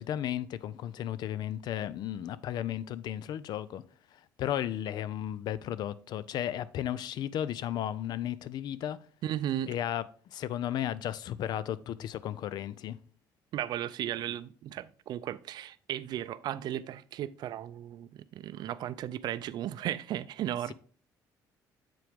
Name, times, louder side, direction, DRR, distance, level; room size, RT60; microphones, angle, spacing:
voice 1, 0.0-3.8 4.1-9.0 9.7-10.0 10.3-13.0, left 11 dB, 65° left, 0.5 m, -34 dB
voice 2, 9.2-9.7 13.5-20.7, right 11 dB, 65° right, 0.4 m, -35 dB
7.6 x 4.7 x 3.5 m
cardioid pair, 100°, 8 cm